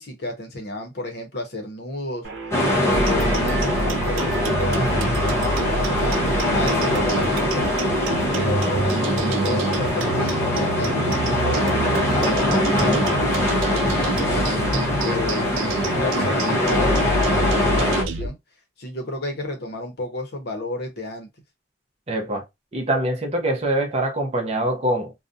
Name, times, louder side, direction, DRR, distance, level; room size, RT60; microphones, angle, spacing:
voice 1, 0.0-2.3 2.8-6.2 6.5-7.8 8.3-14.5 15.0-15.5 15.9-18.4 18.8-21.3, left 1 dB, 55° left, 0.7 m, -32 dB
sound 1, 2.2-9.9, right 3 dB, 60° right, 0.8 m, -36 dB
sound 2, 2.5-18.0, left 1 dB, 15° left, 0.7 m, -22 dB
sound 3, 2.9-18.3, right 3 dB, 80° right, 0.4 m, -27 dB
voice 2, 22.1-22.4 22.7-25.1, right 1 dB, 30° right, 0.6 m, -24 dB
2.4 x 2.1 x 2.6 m
head